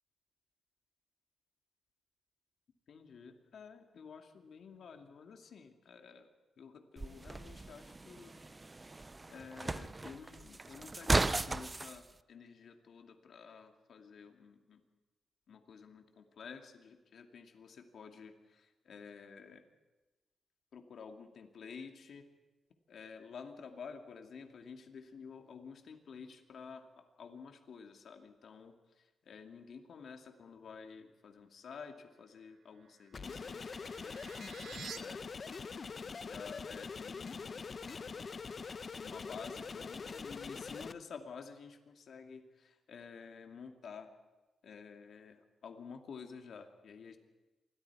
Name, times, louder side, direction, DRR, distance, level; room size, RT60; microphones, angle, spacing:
voice 1, 2.9-6.3 6.6-8.3 9.3-14.8 15.5-19.6 20.7-22.3 22.9-35.2 35.9-38.3 39.0-44.1 44.6-47.2, left 6 dB, 65° left, 5 dB, 2.2 m, -51 dB
sound 1, 7.0-12.0, right 2 dB, 25° right, 0.6 m, -36 dB
sound 2, 32.7-35.0, right 8 dB, 80° right, 1.0 m, -51 dB
sound 3, 33.1-40.9, left 5 dB, 45° left, 0.8 m, -44 dB
27.5 x 21.5 x 4.8 m, 1.1 s
cardioid pair, 90°, 0 cm